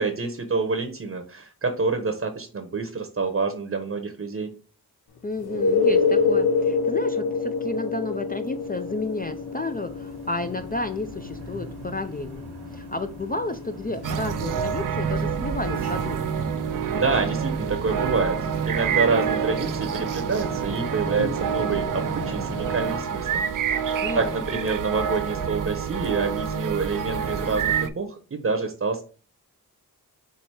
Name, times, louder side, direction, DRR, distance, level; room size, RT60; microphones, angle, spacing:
voice 1, 0.0-4.5 16.9-29.0, right 4 dB, 35° right, 6 dB, 0.8 m, -27 dB
voice 2, 5.2-12.4 12.7-16.2 24.0-24.6, left 2 dB, 25° left, 8 dB, 0.4 m, -32 dB
sound 1, 5.4-16.9 21.2-21.3, left 4 dB, 70° left, 0.9 m, -27 dB
sound 2, 8.4-23.0, right 2 dB, 80° right, 1.1 m, -38 dB
sound 3, 14.0-27.9, right 7 dB, 55° right, 0.5 m, -27 dB
4.6 x 2.7 x 4.3 m, 0.38 s
wide cardioid pair, 75°, 39 cm